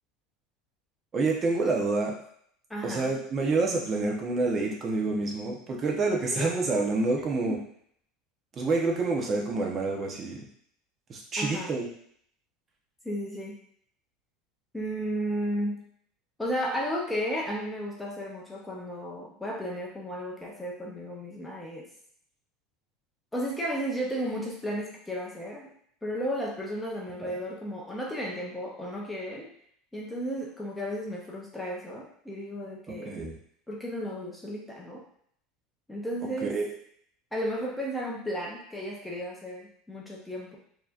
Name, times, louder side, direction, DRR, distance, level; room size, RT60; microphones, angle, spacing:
voice 1, 1.1-2.1 2.8-7.6 8.6-10.4 11.1-11.9 27.2-27.3 33.0-33.4 36.4-36.6, right 3 dB, 25° right, -1 dB, 0.8 m, -28 dB
voice 2, 2.7-3.1 6.4-6.9 7.5-7.6 11.4-11.7 13.0-13.6 14.7-15.8 16.4-21.8 23.3-25.7 26.0-29.5 29.9-33.2 33.7-35.0 35.9-36.6 37.3-40.6, equal, 5° left, -3 dB, 0.7 m, -34 dB
4.6 x 2.8 x 2.4 m, 0.65 s
supercardioid pair, 150°, 0 cm